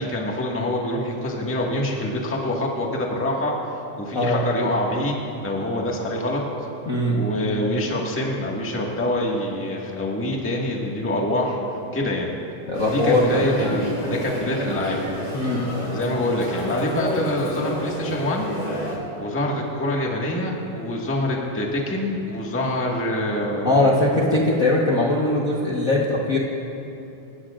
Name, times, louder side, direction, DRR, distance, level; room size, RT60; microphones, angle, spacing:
voice 1, 0.0-3.5 4.0-6.4 7.1-11.6 11.9-12.3 12.9-15.0 15.9-18.6 19.2-23.9, left 1 dB, 10° left, -2 dB, 0.6 m, -25 dB
voice 2, 6.9-7.2 12.7-13.5 15.3-15.7 23.6-26.4, left 2 dB, 85° left, -4 dB, 0.7 m, -20 dB
sound 1, 12.7-19.0, equal, 55° left, 4.9 m, -29 dB
28.5 x 15.5 x 2.5 m, 2.8 s
omnidirectional pair, 3.6 m